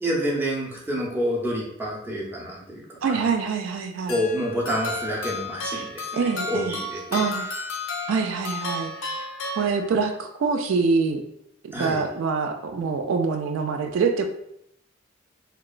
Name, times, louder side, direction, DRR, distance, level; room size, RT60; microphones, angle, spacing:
voice 1, 0.0-3.3 4.1-7.2 11.7-12.0, equal, 10° right, -4 dB, 0.5 m, -28 dB
voice 2, 3.0-4.2 6.1-6.8 7.1-7.5 8.1-9.1 9.6-11.2 11.6-14.3, right 5 dB, 85° right, 5 dB, 0.3 m, -25 dB
sound 1, 4.1-10.2, left 2 dB, 80° left, 0.5 m, -33 dB
2.9 x 2.2 x 2.3 m, 0.75 s
head